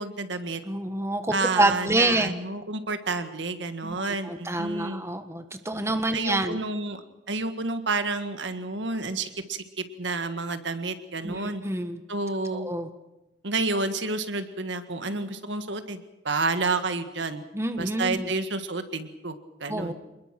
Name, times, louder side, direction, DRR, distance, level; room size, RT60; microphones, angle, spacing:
voice 1, 0.0-0.6 1.3-5.0 5.9-11.6 12.1-12.7 13.4-17.4 17.8-19.9, right 3 dB, 75° right, 9 dB, 1.8 m, -30 dB
voice 2, 0.6-2.3 3.8-6.6 11.2-12.0 12.5-12.9 17.5-18.3 19.7-19.9, right 2 dB, 15° right, 8 dB, 1.4 m, -27 dB
27.0 x 21.0 x 6.1 m, 0.95 s
head